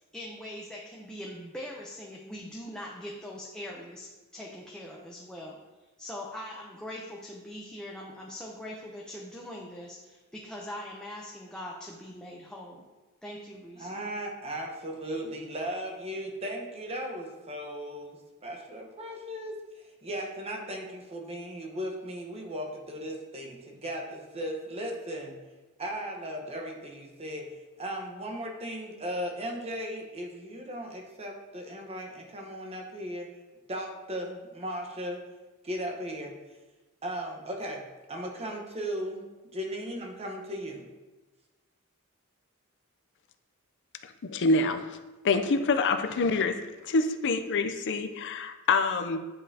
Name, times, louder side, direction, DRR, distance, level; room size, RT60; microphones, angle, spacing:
voice 1, 0.1-5.6 6.0-12.8 13.2-14.0, left 1 dB, 5° left, -3 dB, 0.6 m, -42 dB
voice 2, 13.8-25.4 25.8-27.5 27.8-33.3 33.7-35.2 35.6-36.3 37.0-39.3 39.5-40.9, equal, 30° right, 1 dB, 1.0 m, -37 dB
voice 3, 44.2-44.8 45.2-46.5 46.8-49.2, left 3 dB, 55° left, 8 dB, 0.5 m, -26 dB
9.7 x 5.4 x 2.8 m, 1.2 s
head